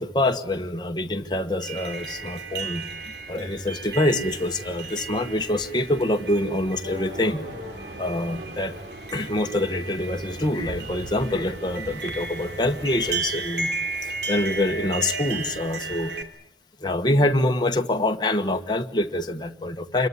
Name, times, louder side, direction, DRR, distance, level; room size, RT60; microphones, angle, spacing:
voice 1, 0.0-2.8 3.3-7.4 8.0-8.7 9.1-13.8 14.3-16.1 16.8-20.1, left 1 dB, 25° left, 5 dB, 1.4 m, -25 dB
windchimes windy, 1.6-16.2, right 3 dB, 75° right, 2.7 m, -34 dB
sound 1, 6.8-10.9, equal, 40° right, 5.1 m, -42 dB
26.5 x 22.5 x 9.5 m, 0.75 s
head